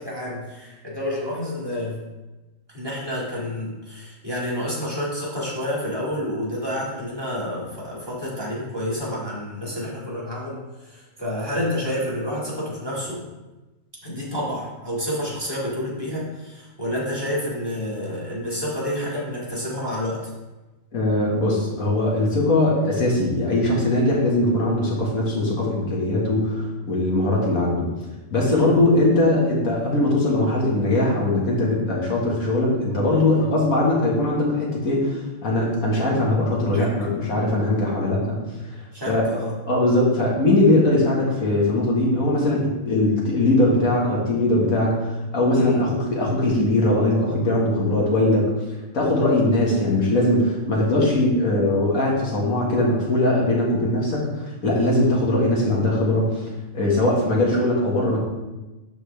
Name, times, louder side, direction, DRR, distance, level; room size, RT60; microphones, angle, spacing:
voice 1, 0.0-2.0 2.7-13.2 14.0-20.3 28.5-28.7 33.1-33.5 36.7-36.9 38.9-39.6 45.5-45.9 57.0-57.2, left 1 dB, 15° right, -6 dB, 2.2 m, -29 dB
voice 2, 20.9-27.9 28.3-38.4 39.1-39.3 39.7-48.5 48.9-58.2, left 1 dB, 90° left, -4 dB, 2.2 m, -21 dB
12.5 x 4.3 x 3.4 m, 1.1 s
omnidirectional pair, 1.4 m